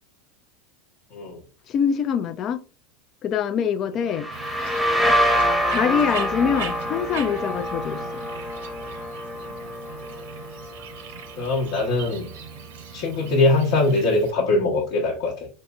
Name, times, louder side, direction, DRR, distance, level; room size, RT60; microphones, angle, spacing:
voice 1, 1.7-2.6 3.2-4.3 5.7-8.2, left 7 dB, 40° left, 0.4 m, -24 dB
sound 1, 4.1-11.7, equal, ahead, 0.9 m, -26 dB
Bird, 4.3-14.3, right 7 dB, 65° right, 0.6 m, -39 dB
voice 2, 11.4-12.3 12.9-15.5, left 2 dB, 55° left, 0.9 m, -22 dB
4.1 x 2.6 x 2.3 m
hypercardioid pair, 85°, 0 cm